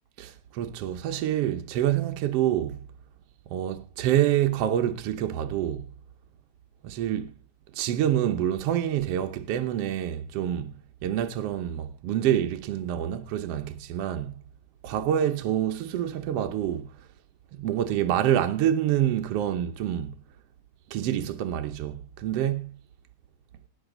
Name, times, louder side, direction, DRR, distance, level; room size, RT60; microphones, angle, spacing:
voice 1, 0.2-2.8 3.5-5.9 6.8-7.3 7.7-10.7 11.0-14.3 14.8-16.9 17.6-20.1 20.9-22.7, right 11 dB, 65° right, 1.6 m, -27 dB
18.0 x 9.6 x 3.8 m
omnidirectional pair, 3.7 m